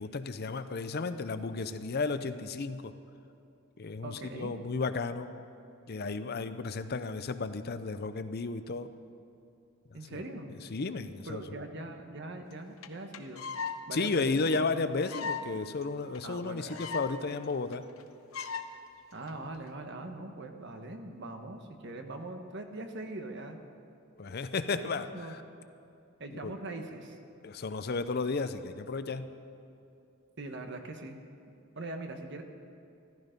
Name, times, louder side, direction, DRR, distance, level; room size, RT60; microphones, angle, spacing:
voice 1, 0.0-2.9 3.8-5.3 5.9-8.9 10.7-11.4 13.9-17.8 24.2-25.4 26.4-26.5 27.4-29.3, left 3 dB, 45° left, 11 dB, 0.6 m, -33 dB
voice 2, 4.0-4.5 9.9-10.5 11.2-13.5 13.9-14.2 14.5-14.7 16.2-16.8 19.1-23.6 24.7-25.3 26.2-27.2 30.4-31.2 31.7-32.4, right 2 dB, 55° right, 5 dB, 1.2 m, -41 dB
sound 1, 12.5-12.6 12.8-12.9 13.1-13.8 14.1-14.2 14.4-14.5 15.0-15.5 15.8-15.9 16.1-16.2 16.4-17.1 17.4-17.5 17.7-18.0 18.3-18.7 19.3-19.6, left 6 dB, 75° left, 0.8 m, -37 dB
14.5 x 14.0 x 5.2 m, 2.7 s
head